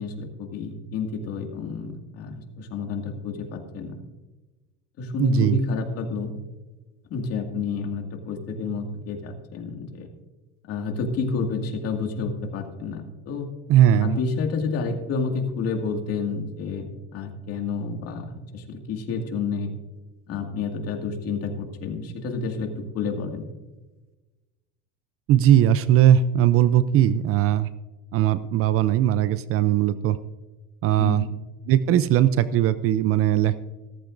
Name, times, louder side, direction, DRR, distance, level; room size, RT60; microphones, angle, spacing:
voice 1, 0.0-3.9 5.0-6.3 7.1-10.1 10.7-13.5 14.0-19.7 20.3-23.5 31.0-31.3, left 4 dB, 45° left, 4 dB, 2.1 m, -29 dB
voice 2, 5.2-5.6 13.7-14.1 25.3-27.7 28.1-30.2 30.8-31.2 31.7-33.6, right 11 dB, 45° right, 15 dB, 0.5 m, -19 dB
15.0 x 14.0 x 2.6 m, 1.1 s
cardioid pair, 130°, 33 cm